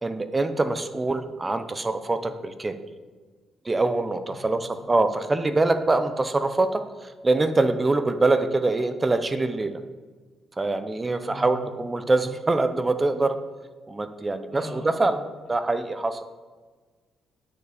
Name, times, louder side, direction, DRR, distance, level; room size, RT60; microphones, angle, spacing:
voice 1, 0.0-2.8 3.6-9.7 10.6-13.4 13.9-15.2 15.5-16.2, right 2 dB, 20° right, 10 dB, 0.8 m, -24 dB
voice 2, 4.3-4.7 11.2-11.7 14.5-15.0, equal, 45° right, -1 dB, 3.0 m, -40 dB
9.5 x 6.8 x 5.1 m, 1.4 s
cardioid pair, 90°, 0 cm